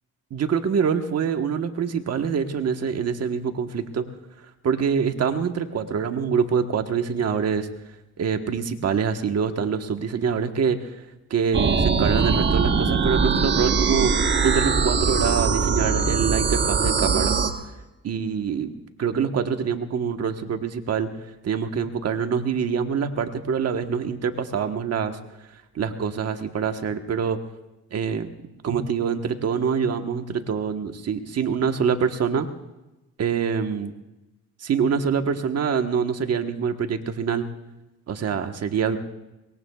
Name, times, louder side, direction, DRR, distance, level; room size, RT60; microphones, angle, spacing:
voice 1, 0.3-4.0 4.6-7.7 8.2-10.9 11.3-14.1 14.4-17.4 18.0-18.7 19.0-21.1 21.4-25.2 25.7-27.4 27.9-28.3 28.6-32.5 33.2-33.9 34.6-37.5 38.1-39.0, right 6 dB, 55° right, 6 dB, 1.3 m, -25 dB
sound 1, 11.5-17.5, right 5 dB, 35° right, 1.3 m, -21 dB
22.5 x 21.0 x 2.4 m, 0.99 s
cardioid pair, 90°, 30 cm